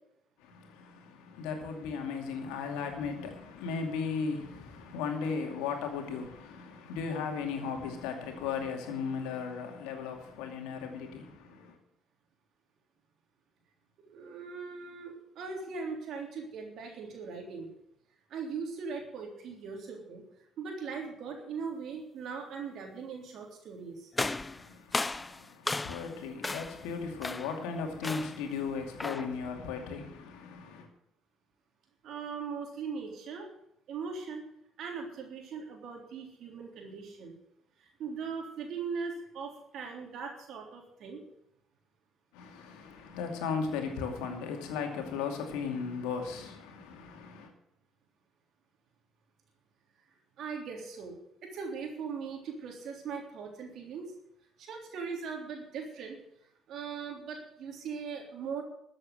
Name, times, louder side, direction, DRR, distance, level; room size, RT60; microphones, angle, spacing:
voice 1, 0.4-11.8 24.3-30.9 42.3-47.5, left 5 dB, 80° left, 2.4 m, -36 dB
voice 2, 14.0-17.7 18.3-20.2 20.6-24.1 32.0-33.5 33.9-34.5 34.8-37.3 37.8-41.2 50.4-51.1 51.4-54.1 54.6-56.2 56.7-58.6, right 5 dB, 65° right, 3.4 m, -40 dB
sound 1, 24.1-26.1 26.4-26.8 27.2-27.6 28.0-28.5 29.0-29.4, left 3 dB, 20° left, 0.5 m, -35 dB
13.5 x 7.8 x 7.9 m
hypercardioid pair, 55°, 0 cm